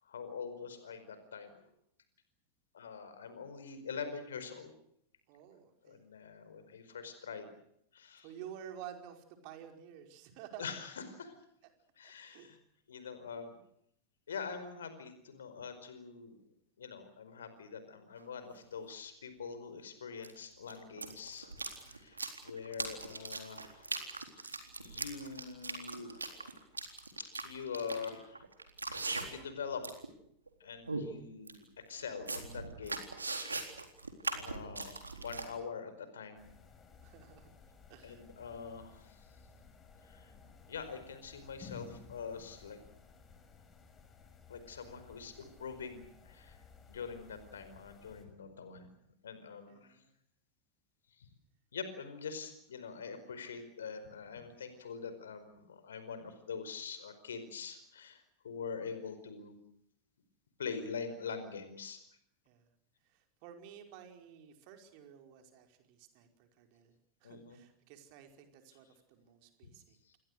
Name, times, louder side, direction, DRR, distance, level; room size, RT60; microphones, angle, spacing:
voice 1, 0.0-1.7 2.7-4.7 5.8-7.5 7.9-8.3 10.6-10.9 11.2-11.4 12.0-12.6 12.9-13.6 14.3-16.4 16.8-22.2 22.4-23.9 24.3-26.1 27.4-28.4 29.2-29.8 30.6-33.1 33.5-33.8 34.3-36.5 38.0-39.3 40.0-40.3 40.7-42.8 44.5-46.6 46.9-48.9 49.2-50.0 51.2-51.3 51.7-59.5 60.6-62.0 67.2-67.6, left 5 dB, 65° left, 10 dB, 4.9 m, -44 dB
voice 2, 5.3-6.0 8.2-10.7 12.3-12.6 21.7-22.2 37.0-37.5 37.9-38.2 49.7-50.1 62.4-62.7 63.0-66.9 67.2-70.2, right 9 dB, 45° right, 5 dB, 5.1 m, -52 dB
sound 1, 18.2-18.3 20.2-20.3 20.6-29.5 29.8-30.1 30.5-30.6 30.9-31.0 31.5-31.6 32.0-35.4, right 3 dB, 80° right, 3.8 m, -40 dB
sound 2, 36.4-48.3, left 5 dB, 20° left, 6.0 m, -57 dB
29.0 x 22.5 x 6.6 m, 0.73 s
figure-of-eight pair, 90°, 0 cm